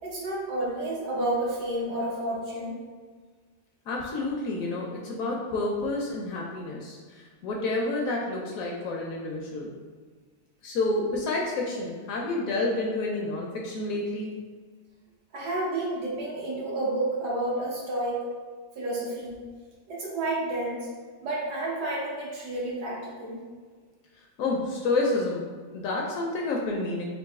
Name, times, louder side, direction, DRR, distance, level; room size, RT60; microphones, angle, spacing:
voice 1, 0.0-2.8 15.3-18.2 18.7-19.4 19.9-20.9 21.2-23.4, right 2 dB, 80° right, -5 dB, 1.6 m, -30 dB
voice 2, 3.9-9.7 10.6-14.3 24.2-25.4 25.7-27.1, left 2 dB, 70° left, -1 dB, 0.9 m, -29 dB
3.9 x 2.6 x 3.5 m, 1.5 s
omnidirectional pair, 1.7 m